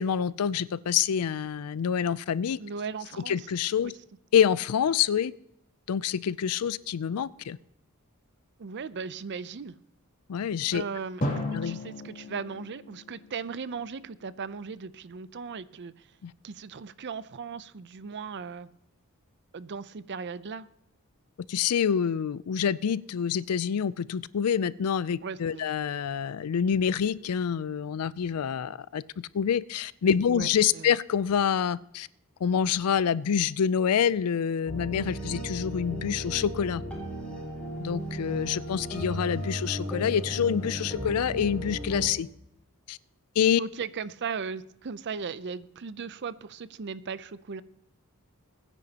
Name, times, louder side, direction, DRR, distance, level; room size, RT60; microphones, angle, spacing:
voice 1, 0.0-2.6 3.3-3.9 4.3-5.3 5.9-7.6 10.3-10.8 11.5-11.8 16.2-16.3 21.5-32.1 32.4-36.8 37.8-42.3 42.9-43.0 43.4-43.6, left 8 dB, 90° left, 19 dB, 0.4 m, -27 dB
voice 2, 2.6-3.5 3.8-3.9 8.6-9.7 10.7-11.2 11.5-16.1 16.4-18.7 19.5-20.7 25.2-25.7 30.2-31.0 43.6-47.6, right 5 dB, 50° right, 16 dB, 0.5 m, -37 dB
Drum, 11.2-14.1, left 1 dB, 40° left, 2.7 m, -35 dB
sound 1, 34.7-42.1, equal, 5° left, 4.3 m, -35 dB
21.0 x 9.9 x 2.9 m, 0.78 s
head